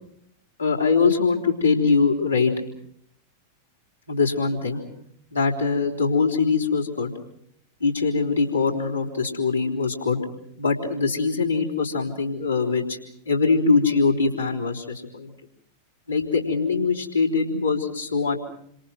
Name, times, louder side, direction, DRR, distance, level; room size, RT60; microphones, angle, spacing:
voice 1, 0.6-2.5 4.1-4.8 5.3-7.1 7.8-10.2 10.6-13.0 13.3-15.3 16.1-18.4, left 4 dB, 85° left, -4 dB, 3.7 m, -22 dB
27.5 x 26.0 x 6.1 m, 0.69 s
figure-of-eight pair, 90°, 0 cm